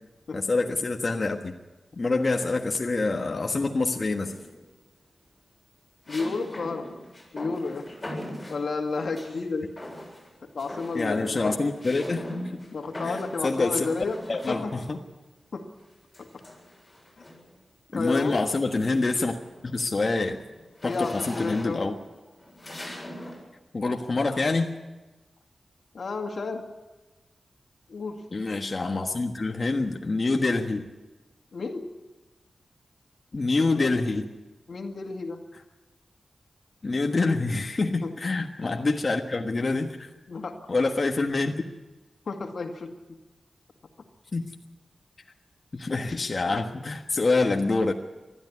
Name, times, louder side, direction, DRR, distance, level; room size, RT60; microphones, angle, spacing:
voice 1, 0.3-1.5 2.0-4.3 10.9-12.2 13.0-13.9 14.3-15.0 17.9-19.4 19.6-20.4 20.8-21.9 23.7-24.7 28.3-30.9 33.3-34.2 36.8-40.1 40.7-41.5 44.3-44.5 45.7-47.9, left 3 dB, 50° left, 3 dB, 1.4 m, -26 dB
sound 1, 4.2-4.7 6.1-9.4 9.8-10.3 10.6-15.0 16.1-17.5 18.1-18.3 18.7-23.4, left 1 dB, 20° left, 7.8 m, -41 dB
voice 2, 6.1-6.9 7.3-7.9 8.5-9.7 10.4-11.5 12.7-14.2 14.5-14.7 15.5-15.6 16.2-16.4 17.2-17.3 17.9-18.3 20.8-21.8 25.9-26.6 27.9-28.2 31.5-31.8 33.6-33.9 34.7-35.4 38.0-38.1 40.3-40.6 42.3-42.9, left 4 dB, 75° left, 3 dB, 2.2 m, -31 dB
20.5 x 13.5 x 9.8 m, 1.2 s
wide cardioid pair, 75°, 0 cm